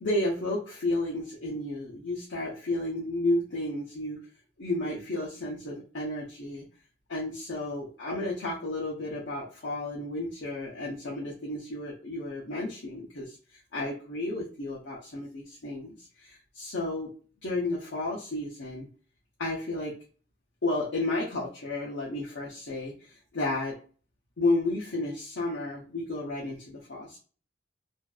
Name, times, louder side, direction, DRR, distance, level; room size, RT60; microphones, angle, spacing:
voice 1, 0.0-4.2 4.6-6.7 7.1-17.1 17.4-18.9 19.4-19.9 20.6-23.8 24.4-27.2, left 2 dB, 85° left, -5 dB, 0.6 m, -32 dB
2.5 x 2.2 x 2.3 m, 0.39 s
head